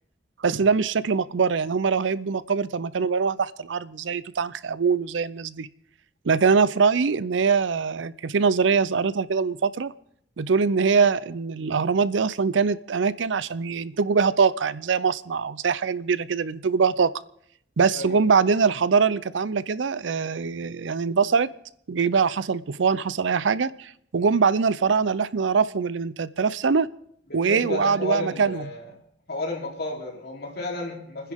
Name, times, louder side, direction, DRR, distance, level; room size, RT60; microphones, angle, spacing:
voice 1, 0.4-5.7 6.2-9.9 10.4-17.1 17.8-21.5 21.9-26.9 27.3-28.7, right 5 dB, 90° right, 17 dB, 0.5 m, -23 dB
voice 2, 27.3-28.8 29.3-31.3, left 2 dB, 60° left, -1 dB, 3.4 m, -32 dB
29.5 x 10.5 x 3.6 m, 0.70 s
head